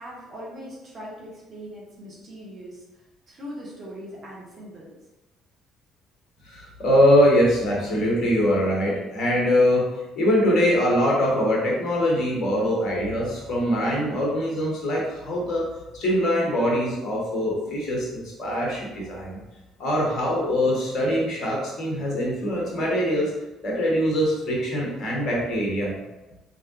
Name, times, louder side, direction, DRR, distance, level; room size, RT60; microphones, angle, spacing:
voice 1, 0.0-4.9, equal, 45° right, -5 dB, 1.3 m, -40 dB
voice 2, 6.4-15.7 15.9-19.4 19.8-23.3 23.6-25.9, equal, 50° left, -3 dB, 1.3 m, -23 dB
3.5 x 3.4 x 2.8 m, 1.0 s
figure-of-eight pair, 50°, 0 cm